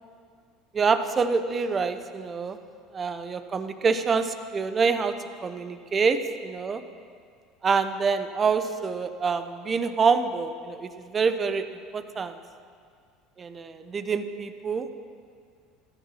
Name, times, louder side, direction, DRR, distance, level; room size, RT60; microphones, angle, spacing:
voice 1, 0.7-2.6 2.9-5.2 5.4-6.8 7.6-12.4 13.4-14.9, right 5 dB, 30° right, 10 dB, 0.9 m, -26 dB
15.0 x 10.5 x 5.7 m, 2.2 s
supercardioid pair, 90°, 0 cm